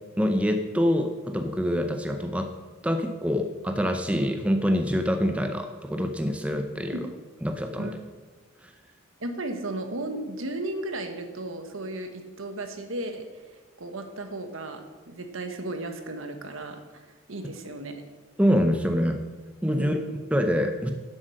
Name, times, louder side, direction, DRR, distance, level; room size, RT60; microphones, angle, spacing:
voice 1, 0.2-2.5 2.8-7.1 7.4-7.9 18.4-19.2 19.6-20.0 20.3-20.9, equal, 5° right, 5 dB, 0.6 m, -25 dB
voice 2, 9.2-13.3 13.8-18.0 19.7-20.1, right 2 dB, 75° right, 6 dB, 1.3 m, -35 dB
11.0 x 7.5 x 6.4 m, 1.3 s
head